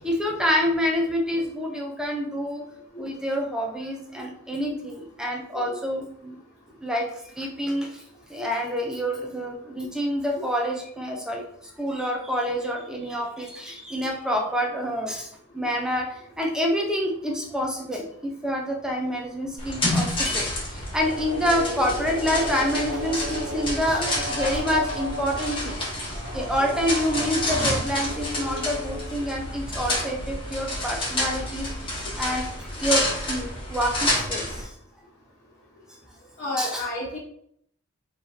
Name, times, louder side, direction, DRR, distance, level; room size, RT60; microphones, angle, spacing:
voice 1, 0.0-2.7 3.0-6.4 6.8-8.0 8.3-34.7 36.6-36.8, equal, 5° right, 0 dB, 0.6 m, -27 dB
sound 1, 19.6-34.6, left 1 dB, 25° left, 1.3 m, -29 dB
sound 2, 21.0-29.6, equal, 50° right, 0.7 m, -35 dB
voice 2, 36.4-37.2, left 1 dB, 45° left, -6 dB, 1.2 m, -31 dB
5.1 x 3.2 x 2.8 m, 0.69 s
head